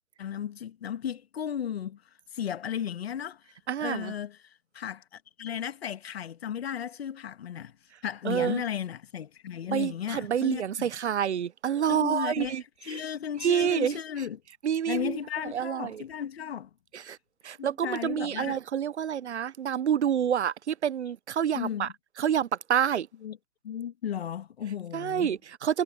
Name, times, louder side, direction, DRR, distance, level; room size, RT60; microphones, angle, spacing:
voice 1, 0.2-2.0 2.3-3.4 3.8-7.8 8.0-10.9 11.9-12.6 12.8-14.4 14.9-16.7 17.6-18.6 21.5-21.9 23.2-23.4 23.6-25.3, left 9 dB, 55° left, 1.9 m, -35 dB
voice 2, 3.7-4.1 8.2-8.6 9.7-12.6 12.9-13.0 13.4-14.0 14.6-15.2 15.5-16.0 16.9-17.2 17.4-21.9 22.2-23.1 24.9-25.8, right 9 dB, 60° right, 0.8 m, -28 dB
hypercardioid pair, 145°, 38 cm